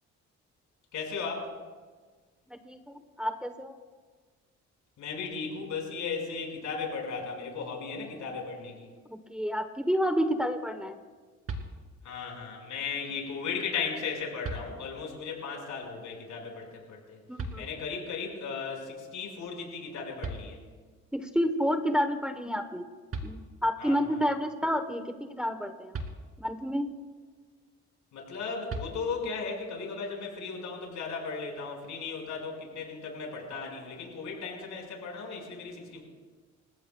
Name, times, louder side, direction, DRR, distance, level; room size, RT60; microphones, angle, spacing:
voice 1, 0.9-1.5 5.0-8.9 12.0-17.2 17.5-20.6 23.8-24.2 28.1-36.0, left 5 dB, 80° left, 0 dB, 5.4 m, -36 dB
voice 2, 2.5-3.8 9.3-11.0 17.3-17.7 21.1-22.9 23.2-25.9 26.4-26.9, equal, 5° right, 7 dB, 1.1 m, -30 dB
sound 1, 11.4-12.2 13.7-13.8 14.4-15.2 17.4-18.1 19.9-20.0 20.2-21.0 22.7-22.8 23.1-23.9 25.9-26.7 28.7-29.5, right 2 dB, 50° right, 2.5 m, -40 dB
29.0 x 15.0 x 2.3 m, 1.4 s
cardioid pair, 90°, 30 cm